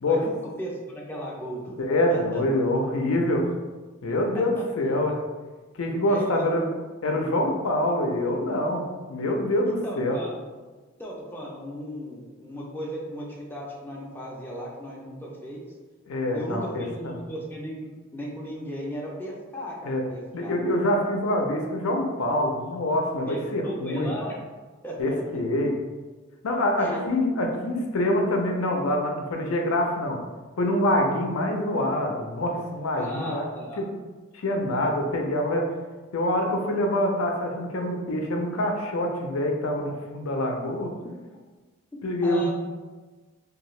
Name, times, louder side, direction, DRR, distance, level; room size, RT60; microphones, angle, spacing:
voice 1, 0.6-1.7 2.1-2.4 4.6-4.7 6.1-6.5 9.8-10.3 11.0-15.6 16.3-20.6 23.3-24.3 24.8-25.2 26.8-27.0 32.9-33.8 42.2-42.5, equal, 10° left, -4 dB, 0.4 m, -36 dB
voice 2, 1.8-3.5 4.0-5.2 5.7-6.7 7.0-10.2 16.1-17.1 19.8-20.0 20.3-24.1 25.0-25.8 26.4-30.2 30.6-33.4 33.8-33.9 34.3-35.7 36.1-40.9 42.0-42.5, left 1 dB, 85° left, 2 dB, 0.5 m, -25 dB
2.7 x 2.3 x 3.1 m, 1.3 s
head